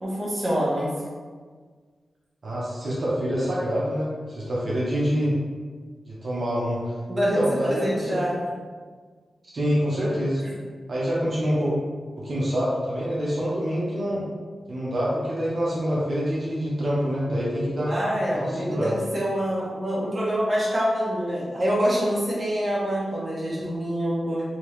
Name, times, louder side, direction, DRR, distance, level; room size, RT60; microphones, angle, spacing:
voice 1, 0.0-0.9 7.1-8.4 17.8-24.4, equal, 20° right, -7 dB, 0.9 m, -26 dB
voice 2, 2.4-5.3 6.1-6.9 7.3-8.2 9.5-10.4 10.9-11.7 12.2-14.2 14.7-17.9 18.3-18.9, equal, 45° right, -7 dB, 0.8 m, -26 dB
3.4 x 2.8 x 3.1 m, 1.5 s
wide cardioid pair, 160°, 0 cm